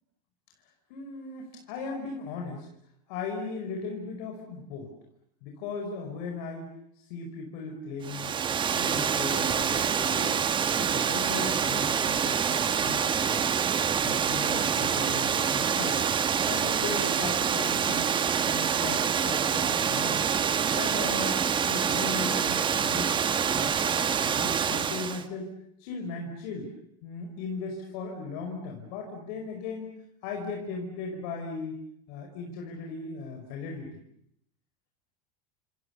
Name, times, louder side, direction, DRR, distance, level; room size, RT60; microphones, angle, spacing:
voice 1, 0.9-2.7 3.1-4.9 5.4-6.7 7.1-8.3 8.7-13.5 14.0-16.0 16.5-18.1 18.4-20.2 20.7-23.2 23.5-25.5 25.8-26.7 27.0-29.9 30.2-31.8 32.1-33.9, left 4 dB, 65° left, 2 dB, 5.1 m, -37 dB
Water, 8.0-25.2, right 7 dB, 25° right, 1.4 m, -26 dB
29.0 x 28.0 x 7.1 m, 0.73 s
supercardioid pair, 135°, 21 cm